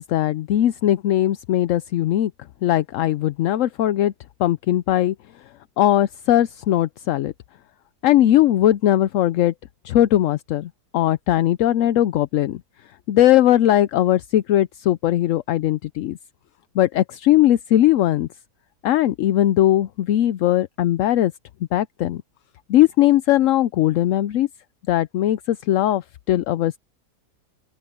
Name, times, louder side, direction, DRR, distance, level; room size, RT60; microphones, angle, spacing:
voice 1, 0.0-2.3 2.6-4.1 4.4-5.1 5.8-7.3 8.0-9.5 9.8-12.6 13.1-16.2 16.7-18.3 18.8-21.3 21.7-22.2 22.7-24.5 24.9-26.8, left 13 dB, 65° left, 0.8 m, -19 dB
open air
omnidirectional pair, 1.7 m